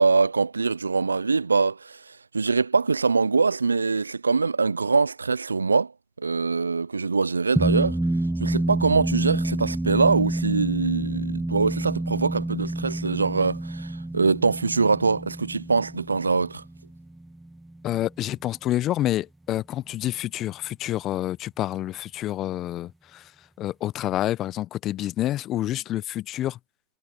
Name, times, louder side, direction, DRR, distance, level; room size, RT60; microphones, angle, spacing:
voice 1, 0.0-2.0 2.3-5.9 6.2-8.0 8.4-16.6, right 4 dB, 85° right, 0.7 m, -23 dB
sound 1, 7.6-18.2, right 1 dB, 10° right, 1.7 m, -28 dB
voice 2, 17.8-23.3 23.6-26.6, left 14 dB, 50° left, 1.0 m, -28 dB
figure-of-eight pair, 65°, 0 cm